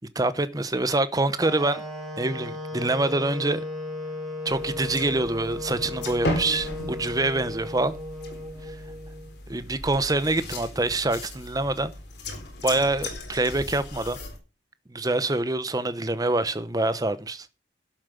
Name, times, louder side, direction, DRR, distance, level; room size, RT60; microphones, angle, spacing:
voice 1, 0.1-1.8 2.2-3.6 4.4-8.0 9.5-11.9 12.6-14.2 14.9-17.5, right 2 dB, 20° right, 0.9 m, -25 dB
Wind instrument woodwind instrument, 1.4-9.3, left 2 dB, ahead, 5.2 m, -36 dB
sound 1, 4.5-14.4, left 1 dB, 60° left, 3.9 m, -36 dB
12.0 x 7.5 x 6.8 m
head